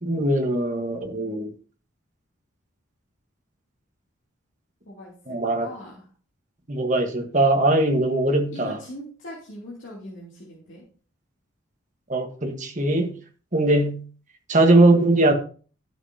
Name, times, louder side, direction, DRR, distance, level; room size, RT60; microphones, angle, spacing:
voice 1, 0.0-1.5 5.3-5.7 6.7-8.8 12.1-13.1 13.5-14.0 14.5-15.3, right 2 dB, 35° right, 1.5 m, -20 dB
voice 2, 4.9-6.1 8.5-10.8, left 1 dB, 65° left, 3.0 m, -41 dB
12.0 x 7.6 x 2.9 m
head